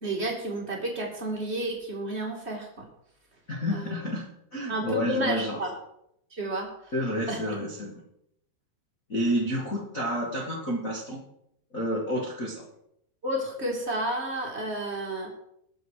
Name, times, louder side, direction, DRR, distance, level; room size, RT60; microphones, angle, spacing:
voice 1, 0.0-2.9 3.7-3.9 4.7-5.7 6.3-6.9 7.3-7.4 13.2-15.3, right 1 dB, 25° right, -1 dB, 1.6 m, -31 dB
voice 2, 3.5-5.6 6.9-8.0 9.1-11.2 11.7-12.6, equal, 65° left, -3 dB, 0.8 m, -30 dB
19.5 x 6.7 x 4.8 m, 0.75 s
omnidirectional pair, 4.9 m